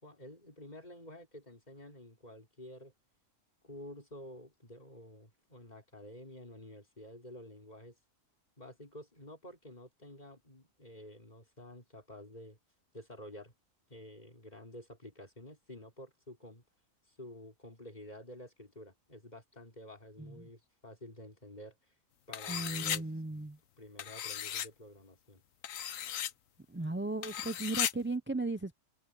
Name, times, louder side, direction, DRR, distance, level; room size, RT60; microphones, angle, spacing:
voice 1, 0.0-2.9 3.6-8.0 8.6-12.6 12.9-13.5 13.9-16.6 17.1-21.8 22.3-23.1 23.8-25.4, left 1 dB, 30° left, 4.7 m, -50 dB
sound 1, 22.3-23.0 24.0-24.7 25.6-26.3 27.2-27.9, left 10 dB, 80° left, 1.2 m, -36 dB
voice 2, 22.5-23.6 26.7-28.8, right 2 dB, 20° right, 0.3 m, -36 dB
omnidirectional pair, 1.4 m